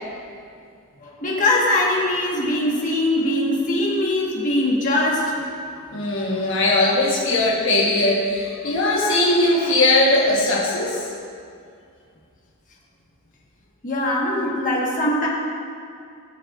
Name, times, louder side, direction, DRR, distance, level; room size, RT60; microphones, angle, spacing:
voice 1, 1.0-5.5 6.2-6.3 9.0-9.2 9.6-9.8 13.8-15.3, left 1 dB, 35° left, -4 dB, 1.5 m, -22 dB
voice 2, 5.9-11.1, left 2 dB, 60° left, -4 dB, 1.3 m, -19 dB
19.0 x 6.5 x 2.5 m, 2.4 s
head